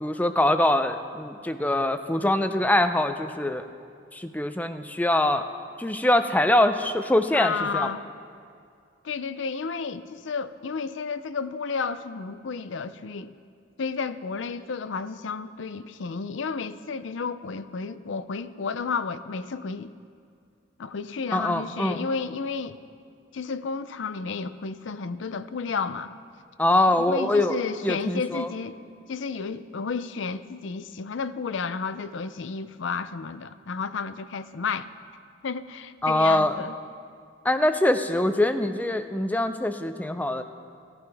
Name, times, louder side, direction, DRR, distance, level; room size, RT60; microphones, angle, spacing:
voice 1, 0.0-3.6 4.1-5.4 5.8-7.9 21.3-22.1 26.6-27.6 27.8-28.5 36.0-36.6 37.4-40.4, left 1 dB, 10° left, 9 dB, 0.5 m, -23 dB
voice 2, 7.3-8.0 9.0-13.3 13.8-19.9 20.8-22.8 23.3-26.1 27.0-28.8 29.1-34.9 35.4-36.7, left 5 dB, 70° left, 13 dB, 0.5 m, -32 dB
16.5 x 14.5 x 3.5 m, 2.3 s
head